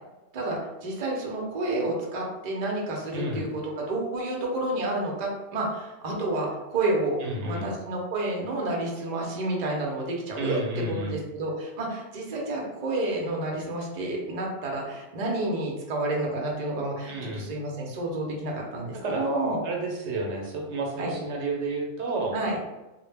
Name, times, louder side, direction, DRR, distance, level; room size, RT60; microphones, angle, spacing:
voice 1, 0.3-10.6 10.9-19.6 21.0-21.1 22.3-22.6, right 2 dB, 50° right, -1 dB, 0.6 m, -30 dB
voice 2, 3.1-3.4 7.2-7.7 10.4-11.2 17.1-17.5 19.0-19.2 19.6-22.4, right 2 dB, 80° right, 0 dB, 0.9 m, -31 dB
2.1 x 2.1 x 3.2 m, 1.0 s
omnidirectional pair, 1.2 m